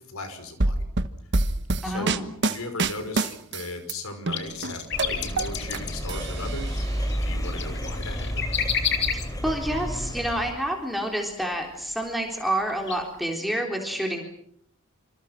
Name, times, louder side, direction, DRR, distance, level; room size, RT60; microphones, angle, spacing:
voice 1, 0.1-0.8 1.8-8.7, left 2 dB, 75° left, 8 dB, 5.5 m, -37 dB
sound 1, 0.6-3.9 4.3-5.8 6.1-7.0, right 2 dB, 50° right, 1.3 m, -26 dB
voice 2, 1.8-2.3 9.1-14.2, right 1 dB, ahead, 1 dB, 3.8 m, -28 dB
sound 2, 4.3-9.6 10.4-10.5 11.9-12.0 12.5-13.0 13.3-13.4, left 8 dB, 55° left, 3.4 m, -30 dB
sound 3, 4.9-10.5, equal, 15° left, 3.4 m, -31 dB
27.5 x 27.0 x 6.2 m, 0.67 s
head